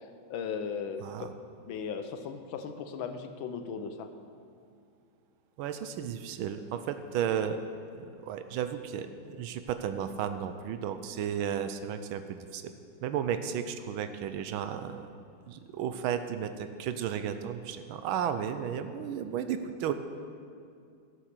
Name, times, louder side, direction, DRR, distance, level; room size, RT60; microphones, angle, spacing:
voice 1, 0.3-1.3 1.7-4.1, left 6 dB, 75° left, 8 dB, 1.6 m, -37 dB
voice 2, 1.0-1.3 5.6-7.6 8.0-12.7 13.0-15.1 15.5-19.9, right 8 dB, 85° right, 10 dB, 1.4 m, -33 dB
13.0 x 7.4 x 6.6 m, 2.4 s
omnidirectional pair, 2.2 m